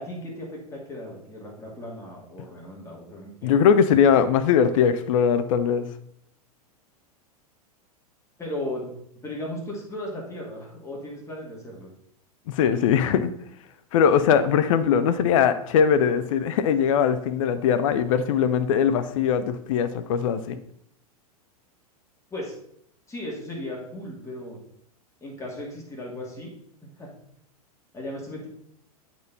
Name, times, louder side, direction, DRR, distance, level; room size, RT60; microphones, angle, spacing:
voice 1, 0.0-3.6 8.4-8.9 9.2-11.9 22.3-22.5 23.1-24.6 25.2-26.5 26.8-27.1 27.9-28.5, left 1 dB, 15° left, -3 dB, 2.5 m, -36 dB
voice 2, 3.4-5.9 12.5-13.3 13.9-20.6, left 7 dB, 55° left, 12 dB, 0.6 m, -21 dB
8.3 x 4.4 x 4.1 m, 0.69 s
figure-of-eight pair, 100°, 20 cm